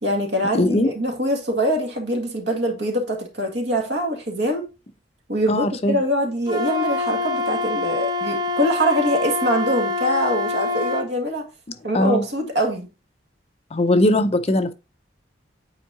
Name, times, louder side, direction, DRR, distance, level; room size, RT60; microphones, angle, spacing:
voice 1, 0.0-4.7 5.3-11.5 11.8-12.9, equal, 70° right, 1.9 m, -23 dB
voice 2, 0.5-0.9 5.5-6.0 11.9-12.3 13.7-14.7, left 1 dB, 35° left, 0.5 m, -19 dB
Wind instrument woodwind instrument, 6.5-11.1, left 2 dB, 25° right, 0.7 m, -25 dB
8.9 x 4.6 x 2.7 m
head